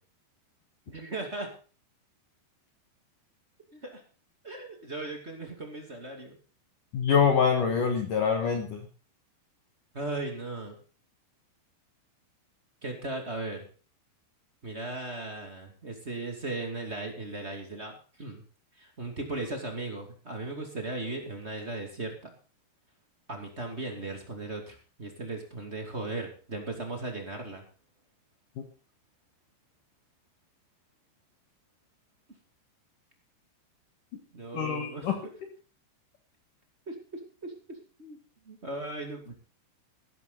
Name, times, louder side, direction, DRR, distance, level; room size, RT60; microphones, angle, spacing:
voice 1, 0.9-1.5 3.7-4.0 4.4-6.4 8.5-8.6 9.9-10.7 12.8-13.6 14.6-18.4 18.8-22.3 23.3-27.6 34.3-35.2 36.8-36.9 37.4-38.2 38.4-39.3, right 2 dB, 30° right, 2 dB, 1.2 m, -37 dB
voice 2, 6.9-8.8 34.5-35.2, left 6 dB, 60° left, 4 dB, 2.3 m, -25 dB
15.5 x 12.5 x 4.0 m, 0.37 s
omnidirectional pair, 5.5 m